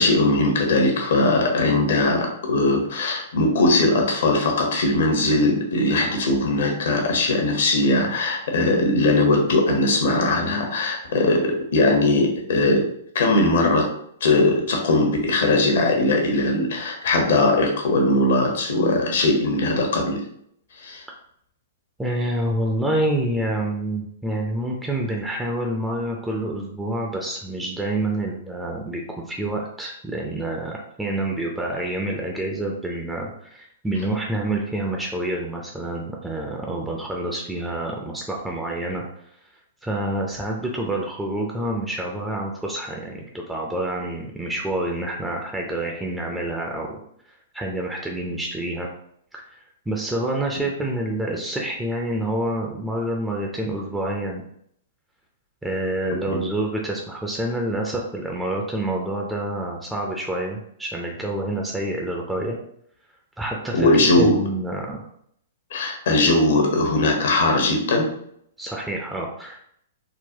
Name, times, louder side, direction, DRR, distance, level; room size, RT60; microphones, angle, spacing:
voice 1, 0.0-12.9 13.1-13.9 14.2-20.2 20.8-21.0 63.7-64.4 65.7-68.1, left 2 dB, 65° left, 2 dB, 0.9 m, -20 dB
voice 2, 22.0-39.0 39.8-47.0 47.5-48.9 49.3-49.6 49.9-54.4 55.6-62.6 63.4-65.1 68.6-69.6, right 1 dB, 5° right, -1 dB, 0.5 m, -27 dB
3.8 x 2.2 x 2.7 m, 0.69 s
hypercardioid pair, 115°, 0 cm